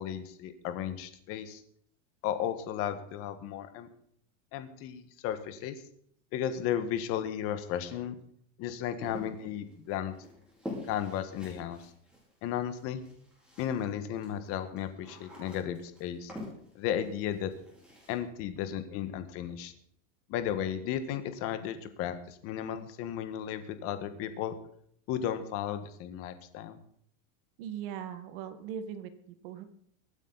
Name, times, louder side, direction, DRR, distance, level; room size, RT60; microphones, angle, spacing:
voice 1, 0.0-1.6 2.2-3.9 4.5-5.8 6.3-8.2 8.6-10.1 10.9-11.9 12.4-13.0 13.6-16.3 16.7-17.5 18.1-19.7 20.3-24.6 25.1-26.8, left 10 dB, 35° left, 10 dB, 1.6 m, -34 dB
sound 1, 9.0-13.9 14.2-18.2, left 1 dB, ahead, 4.3 m, -46 dB
voice 2, 27.6-29.6, right 8 dB, 50° right, 9 dB, 1.9 m, -40 dB
23.5 x 9.0 x 4.1 m, 0.65 s
supercardioid pair, 165°, 38 cm